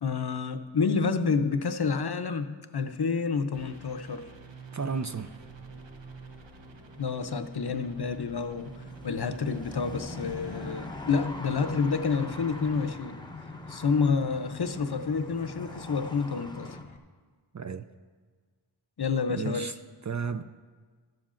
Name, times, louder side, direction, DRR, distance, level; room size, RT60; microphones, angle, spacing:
voice 1, 0.0-4.3 7.0-8.7 9.0-13.2 13.7-16.8 19.0-19.7, left 5 dB, 55° left, 0.6 m, -29 dB
sound 1, 3.5-12.9, right 3 dB, 65° right, 0.9 m, -48 dB
sound 2, 3.9-16.8, left 2 dB, 10° left, 0.7 m, -45 dB
voice 2, 4.7-5.3 17.5-17.9 19.3-19.7 20.0-20.4, right 5 dB, 40° right, 0.4 m, -33 dB
sound 3, 10.1-17.0, left 4 dB, 85° left, 1.0 m, -47 dB
13.5 x 13.0 x 2.5 m
wide cardioid pair, 50°, 47 cm